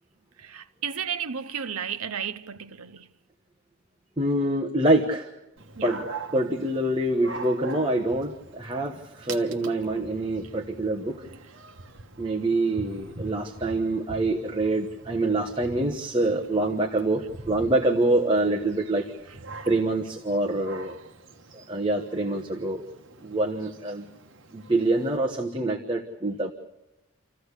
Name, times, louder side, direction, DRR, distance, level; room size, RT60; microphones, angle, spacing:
voice 1, 0.4-3.1 5.8-6.0 10.4-10.5 19.3-19.4, right 7 dB, 90° right, 0.9 m, -33 dB
voice 2, 4.2-5.3 5.8-6.1 6.3-11.2 12.2-19.1 19.7-20.9 21.5-22.8 23.2-24.1 24.5-26.5, right 2 dB, 20° right, 1.2 m, -25 dB
Dog, 5.6-25.2, right 3 dB, 60° right, 1.4 m, -43 dB
27.0 x 15.0 x 8.2 m
head